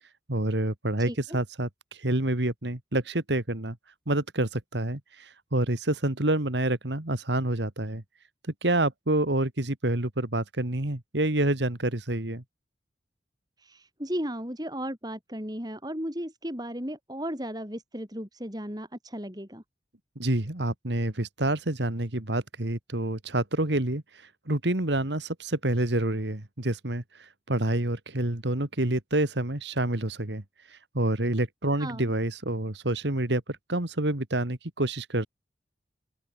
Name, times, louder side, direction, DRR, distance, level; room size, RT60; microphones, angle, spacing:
voice 1, 0.3-1.7 2.0-3.8 4.1-8.0 8.6-12.4 20.2-24.0 24.5-27.0 27.5-30.4 30.9-33.4 33.7-35.3, right 1 dB, 75° right, 2.4 m, -27 dB
voice 2, 1.1-1.4 13.6-19.6 31.8-32.1, equal, 20° right, 7.1 m, -35 dB
open air
head